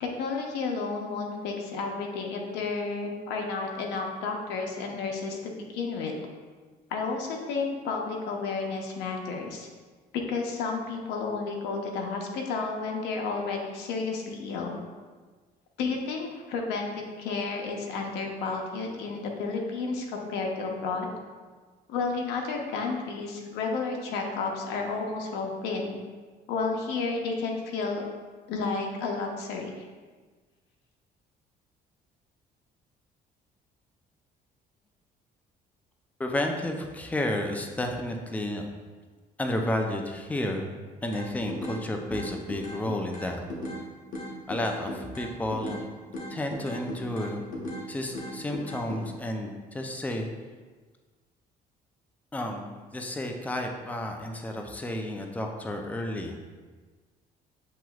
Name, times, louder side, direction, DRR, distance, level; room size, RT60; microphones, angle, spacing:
voice 1, 0.0-6.2 6.9-9.7 10.1-14.8 15.8-21.1 21.9-26.0 26.5-28.1 28.5-29.9, left 4 dB, 90° left, 1 dB, 0.7 m, -31 dB
voice 2, 36.2-38.7 39.4-40.7 41.0-43.4 44.5-45.9 46.3-47.5 47.9-50.3 52.3-56.4, left 1 dB, 10° left, 2 dB, 0.5 m, -31 dB
sound 1, 41.1-41.8 42.1-43.8 44.1-45.8 46.1-47.8 48.1-49.0, left 1 dB, 50° left, 1.2 m, -37 dB
7.4 x 3.0 x 2.3 m, 1.4 s
cardioid pair, 110°, 17 cm